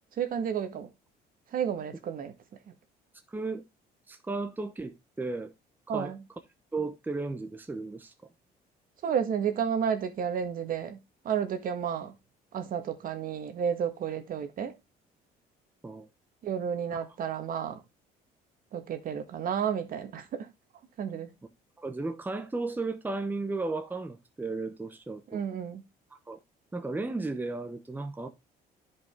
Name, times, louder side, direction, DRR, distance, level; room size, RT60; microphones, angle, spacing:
voice 1, 0.2-0.9 1.5-2.3 5.9-6.2 9.0-11.0 11.2-12.1 12.5-14.7 16.4-17.8 18.7-20.5 21.0-21.3 25.3-25.8, right 8 dB, 55° right, 1.6 m, -31 dB
voice 2, 3.3-3.6 4.1-5.5 5.9-6.1 6.7-8.1 15.8-16.1 16.9-17.0 21.8-25.4 26.3-26.4 26.7-28.3, right 3 dB, 10° right, 0.9 m, -34 dB
10.5 x 5.3 x 3.7 m
cardioid pair, 110°, 17 cm